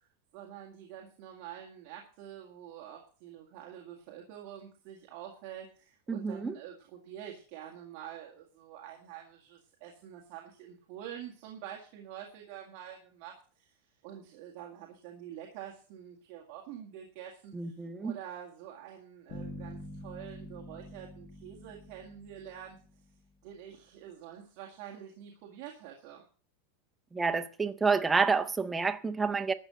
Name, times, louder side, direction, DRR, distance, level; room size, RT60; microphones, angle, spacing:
voice 1, 0.3-13.7 14.0-17.7 18.0-22.8 23.4-26.2, right 10 dB, 40° right, 2.0 m, -47 dB
voice 2, 6.1-6.5 17.5-18.1 27.1-29.5, right 4 dB, 5° right, 0.6 m, -29 dB
sound 1, 19.3-23.3, left 1 dB, 25° left, 2.1 m, -46 dB
12.5 x 6.2 x 7.7 m
supercardioid pair, 180°, 0 cm